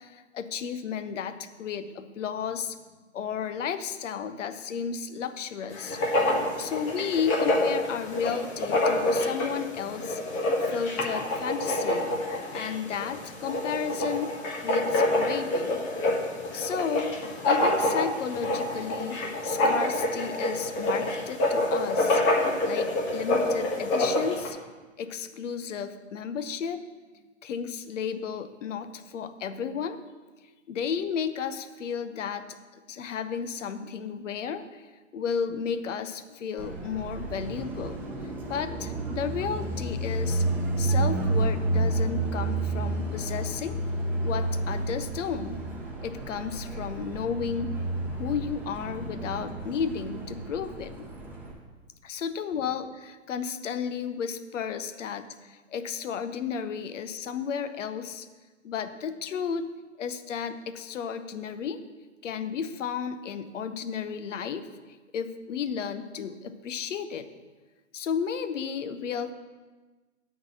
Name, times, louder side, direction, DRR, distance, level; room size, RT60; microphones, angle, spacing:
voice 1, 0.0-2.8 3.1-6.0 6.6-10.2 10.6-12.1 12.5-14.4 14.6-15.8 16.5-17.2 17.4-22.2 22.6-24.6 25.0-26.8 27.4-30.0 30.7-32.4 32.9-34.8 35.1-38.0 38.5-40.4 40.8-43.8 44.2-45.6 46.0-47.8 48.1-51.1 52.0-58.3 58.6-59.7 60.0-61.8 62.2-64.7 65.1-67.3 67.9-69.3, left 7 dB, 70° left, 10 dB, 0.8 m, -33 dB
Writing, 5.7-24.5, left 1 dB, 30° left, 1.4 m, -27 dB
Car passing by, 36.6-51.5, right 2 dB, 5° right, 1.5 m, -30 dB
8.7 x 4.1 x 7.1 m, 1.3 s
hypercardioid pair, 125°, 39 cm